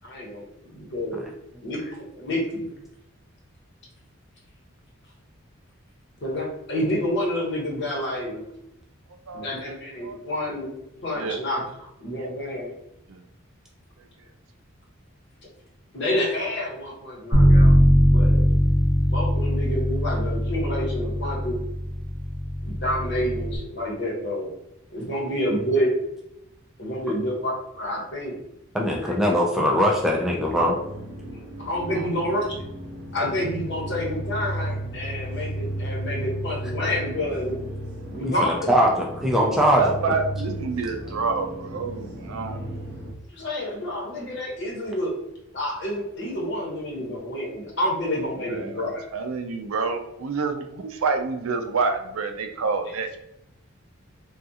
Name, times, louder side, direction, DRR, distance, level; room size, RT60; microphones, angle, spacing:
voice 1, 0.0-1.2 1.6-2.7 6.2-8.4 9.3-10.7 11.0-12.7 15.9-17.7 18.0-18.4 19.1-21.6 22.6-24.5 24.9-25.9 26.8-28.4 29.0-29.2 31.3-32.5 33.1-37.6 38.1-38.7 43.3-45.1 45.5-49.0, left 1 dB, 55° left, -2 dB, 1.0 m, -28 dB
voice 2, 9.3-10.2 11.1-11.4 12.2-12.3 13.1-13.2 31.9-32.1 39.8-42.8 48.4-48.7 49.1-53.2, right 4 dB, 85° right, 6 dB, 0.4 m, -28 dB
Bass guitar, 17.3-23.6, equal, 25° left, 1.0 m, -20 dB
voice 3, 28.7-30.7 38.4-39.9, equal, ahead, -2 dB, 0.4 m, -21 dB
sound 1, 30.4-43.1, right 1 dB, 60° right, 0.8 m, -34 dB
3.6 x 2.4 x 2.7 m, 0.83 s
head